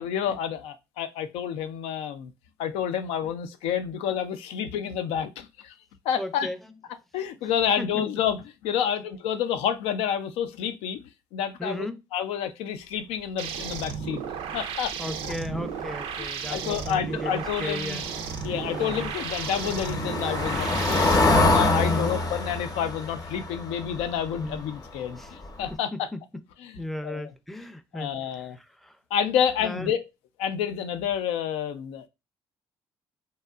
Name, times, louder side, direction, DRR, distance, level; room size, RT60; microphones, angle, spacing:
voice 1, 0.0-2.3 2.6-5.7 6.1-6.5 7.1-14.2 14.5-14.9 15.2-15.3 16.2-18.1 18.4-26.1 26.6-27.3 27.9-28.6 29.1-30.0 30.4-32.1, left 8 dB, 85° left, 0.4 m, -29 dB
voice 2, 6.2-6.6 7.8-8.0 11.6-12.0 15.0-18.1 18.7-19.1 21.8-22.2 24.4-24.6 25.2-25.3 25.9-26.2 26.8-28.1 28.8-29.0 29.6-29.9, left 1 dB, ahead, 0.4 m, -35 dB
sound 1, 13.4-21.2, right 7 dB, 80° right, 0.4 m, -34 dB
Car passing by / Engine, 17.9-24.9 25.2-25.5 25.7-25.8, left 2 dB, 35° left, 0.7 m, -26 dB
2.7 x 2.3 x 2.3 m
supercardioid pair, 70°, 10 cm